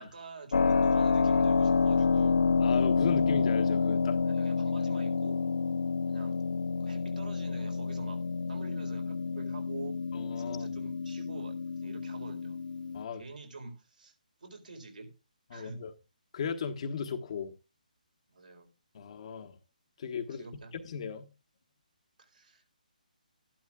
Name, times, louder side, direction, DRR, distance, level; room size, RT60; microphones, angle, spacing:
voice 1, 0.0-2.4 4.2-5.4 6.1-6.4 6.8-8.2 8.5-10.0 10.4-11.5 11.8-12.6 13.1-14.1 14.4-15.1 15.5-15.8 18.3-18.7 20.4-20.8 22.2-22.8, right 3 dB, 70° right, 4.0 m, -46 dB
Keyboard (musical), 0.5-13.0, left 5 dB, 65° left, 0.5 m, -28 dB
voice 2, 2.6-4.2 10.1-10.7 12.9-13.2 15.5-15.9 16.3-17.5 18.9-19.6 20.0-20.4 20.7-21.3, left 6 dB, 45° left, 1.4 m, -36 dB
13.5 x 11.5 x 2.3 m
figure-of-eight pair, 140°, 5 cm